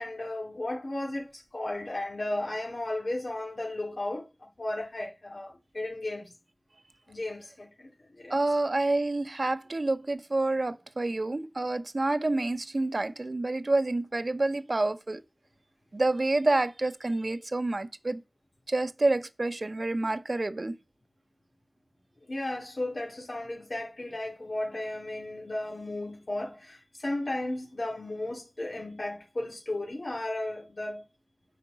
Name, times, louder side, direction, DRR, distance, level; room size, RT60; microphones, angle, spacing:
voice 1, 0.0-6.3 7.1-8.6 22.3-31.0, left 1 dB, 90° left, 2.6 m, -35 dB
voice 2, 8.3-15.2 15.9-18.2 18.7-20.8, right 2 dB, 70° right, 0.8 m, -28 dB
8.5 x 5.1 x 6.8 m
wide cardioid pair, 50°, 0 cm